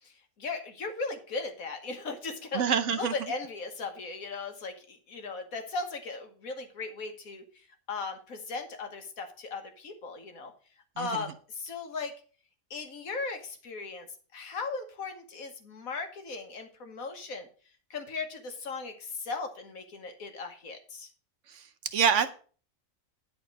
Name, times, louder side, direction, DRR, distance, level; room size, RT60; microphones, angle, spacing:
voice 1, 0.0-2.7 3.0-10.5 11.0-12.1 12.7-14.1 14.3-17.5 17.9-21.1, left 4 dB, 80° left, 6 dB, 1.8 m, -37 dB
voice 2, 2.5-3.1 11.0-11.2 21.5-22.3, right 7 dB, 65° right, 10 dB, 1.0 m, -27 dB
10.0 x 4.4 x 6.4 m, 0.40 s
omnidirectional pair, 1.4 m